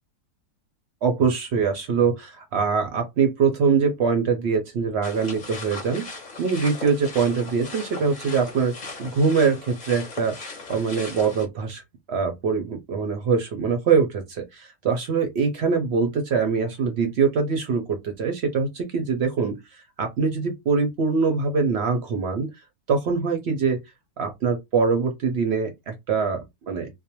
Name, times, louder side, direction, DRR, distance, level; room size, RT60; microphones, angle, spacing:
voice 1, 1.0-6.1 6.4-8.7 9.0-10.4 10.7-11.8 12.1-19.6 20.0-22.5 22.9-23.8 24.2-26.9, right 5 dB, 65° right, 0.7 m, -23 dB
sound 1, 5.0-11.5, left 3 dB, 40° left, 0.7 m, -38 dB
2.4 x 2.1 x 2.8 m
omnidirectional pair, 1.5 m